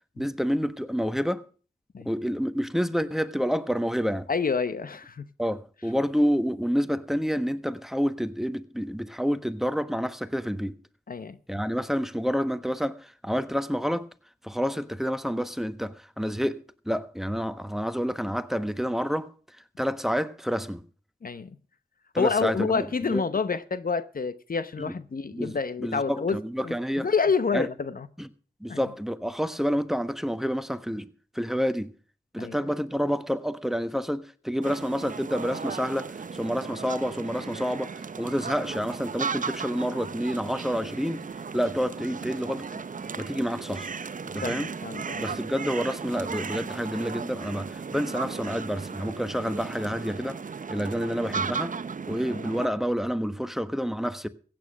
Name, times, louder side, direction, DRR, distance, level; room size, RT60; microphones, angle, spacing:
voice 1, 0.2-1.4 2.0-4.3 5.4-10.7 11.5-14.1 14.4-16.6 16.9-19.3 19.8-20.8 22.1-23.2 24.8-24.9 25.3-27.1 27.5-27.7 28.2-28.3 28.6-31.1 31.3-31.9 32.3-41.2 41.5-42.7 43.2-43.9 44.2-44.7 45.2-50.4 50.7-51.7 52.1-54.3, equal, ahead, 1.2 m, -28 dB
voice 2, 4.3-5.3 11.1-11.4 21.2-21.6 22.2-26.4 26.6-28.1 28.7-28.8 32.4-32.6 44.4-45.3 52.3-52.4, left 5 dB, 60° left, 0.9 m, -28 dB
sound 1, 34.6-52.7, right 5 dB, 50° right, 0.6 m, -35 dB
15.5 x 9.0 x 6.3 m
cardioid pair, 40°, 17 cm